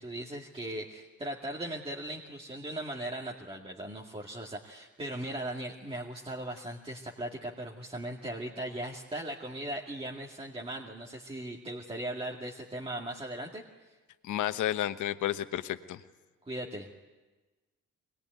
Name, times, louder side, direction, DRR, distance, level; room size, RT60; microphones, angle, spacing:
voice 1, 0.0-13.6 16.5-16.9, right 1 dB, 20° right, -2 dB, 2.2 m, -38 dB
voice 2, 14.2-16.0, left 12 dB, 75° left, 11 dB, 1.1 m, -31 dB
23.0 x 20.0 x 9.4 m, 1.2 s
cardioid pair, 90°, 30 cm